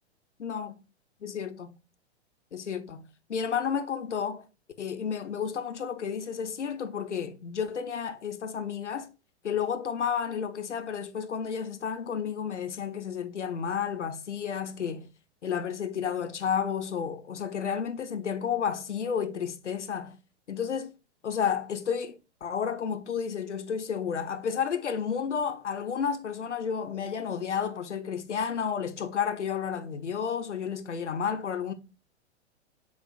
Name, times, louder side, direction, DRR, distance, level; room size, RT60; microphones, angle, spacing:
voice 1, 0.4-0.7 1.2-1.8 2.5-4.4 4.8-9.1 9.4-15.1 15.4-20.2 20.5-20.9 21.2-31.7, left 7 dB, 85° left, 0.6 m, -31 dB
7.0 x 2.4 x 2.4 m
figure-of-eight pair, 105°, 34 cm